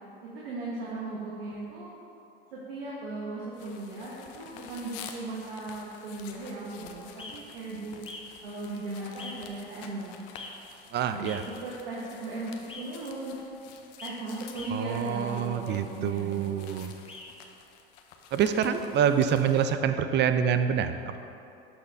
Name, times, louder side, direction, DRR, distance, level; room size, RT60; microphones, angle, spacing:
voice 1, 0.2-1.9 2.5-8.0 8.4-10.2 11.1-11.4 11.6-13.3 14.0-16.7, right 2 dB, 75° right, -6 dB, 1.4 m, -37 dB
sound 1, 3.5-19.8, left 7 dB, 55° left, 0.8 m, -50 dB
sound 2, 7.2-7.3 8.0-8.2 9.2-9.3 10.3-10.5 11.2-11.4 12.7-12.8 14.0-14.1 14.5-14.7 17.1-17.3, left 4 dB, 20° left, 1.2 m, -42 dB
voice 2, 10.9-11.4 14.7-16.9 18.3-21.2, right 8 dB, 35° right, 9 dB, 0.5 m, -26 dB
12.0 x 4.3 x 3.5 m, 2.7 s
hypercardioid pair, 80°, 30 cm